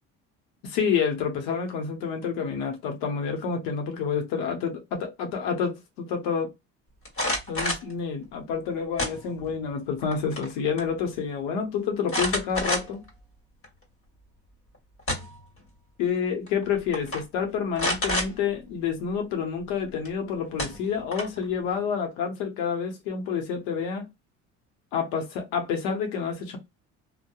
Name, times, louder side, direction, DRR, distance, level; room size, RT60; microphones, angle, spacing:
voice 1, 0.6-6.5 7.5-13.0 16.0-24.1 24.9-26.6, left 6 dB, 80° left, 0.9 m, -28 dB
Nerf Roughcut Shot & Reload, 7.1-7.9 9.0-9.6 10.0-10.5 10.8-10.9 12.1-13.1 13.6-13.7 14.7-15.5 16.5-16.6 16.9-17.2 17.8-18.3 20.0-20.1 20.6-21.4, left 1 dB, 40° left, 1.4 m, -28 dB
2.7 x 2.2 x 2.3 m
supercardioid pair, 80°, 34 cm